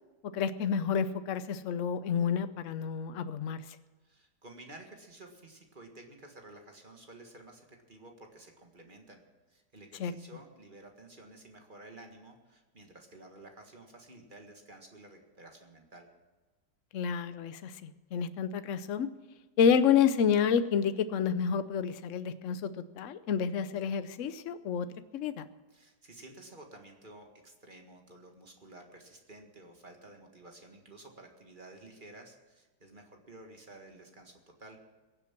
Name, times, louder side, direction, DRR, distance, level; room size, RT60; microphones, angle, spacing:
voice 1, 0.3-3.6 10.0-10.1 16.9-19.1 19.6-24.9 25.1-25.4, left 7 dB, 60° left, 12 dB, 0.9 m, -29 dB
voice 2, 4.0-16.1 25.7-34.8, right 2 dB, 30° right, 3 dB, 1.8 m, -52 dB
22.5 x 7.5 x 6.0 m, 1.3 s
omnidirectional pair, 1.9 m